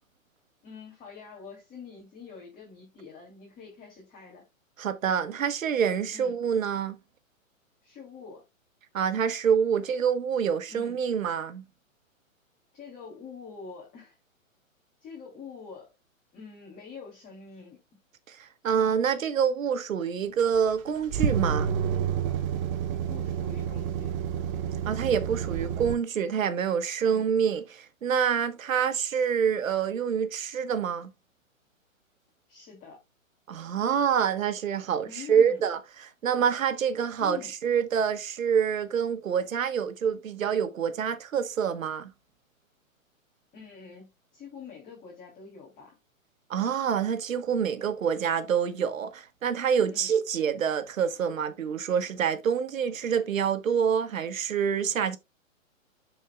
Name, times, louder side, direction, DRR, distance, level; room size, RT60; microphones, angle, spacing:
voice 1, 0.6-4.5 6.1-6.4 7.8-8.4 10.7-11.0 12.7-14.2 15.0-15.9 16.3-17.8 23.0-24.1 27.0-27.4 32.5-33.0 35.0-35.6 37.2-37.5 43.5-45.9 49.9-50.1, left 6 dB, 20° left, 2.8 m, -45 dB
voice 2, 4.8-7.0 8.9-11.6 18.3-18.4 18.6-21.8 24.8-31.1 33.5-42.1 46.5-55.2, right 7 dB, 75° right, 1.3 m, -27 dB
sound 1, 20.4-25.9, right 8 dB, 25° right, 0.6 m, -29 dB
13.0 x 4.6 x 2.3 m
hypercardioid pair, 135°, 41 cm